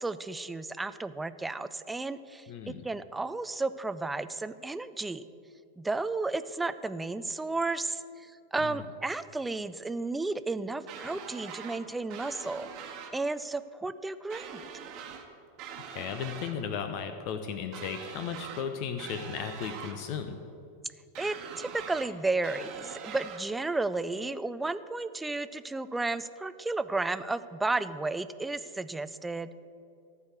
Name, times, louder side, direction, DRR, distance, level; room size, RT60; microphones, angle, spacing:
voice 1, 0.0-2.5 2.8-5.2 5.8-14.6 21.2-29.5, right 3 dB, 10° right, 13 dB, 0.4 m, -33 dB
voice 2, 2.5-2.8 8.6-8.8 15.9-20.4, left 7 dB, 45° left, 8 dB, 0.7 m, -35 dB
sound 1, 10.9-11.8 12.1-13.1 14.3-15.3 15.6-16.5 17.7-18.7 19.0-20.0 21.1-22.1 22.4-23.4, right 7 dB, 40° right, 1.2 m, -43 dB
14.5 x 4.8 x 8.1 m, 2.6 s
figure-of-eight pair, 90°, 0 cm